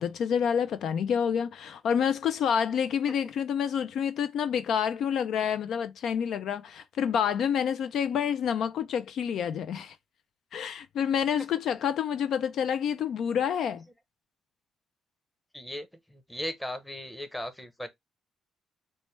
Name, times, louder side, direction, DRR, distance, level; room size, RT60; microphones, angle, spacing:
voice 1, 0.0-10.0 10.5-13.8, left 8 dB, 70° left, 0.3 m, -28 dB
voice 2, 15.5-17.9, left 1 dB, 10° left, 0.8 m, -37 dB
4.2 x 2.1 x 3.1 m
cardioid pair, 90°, 0 cm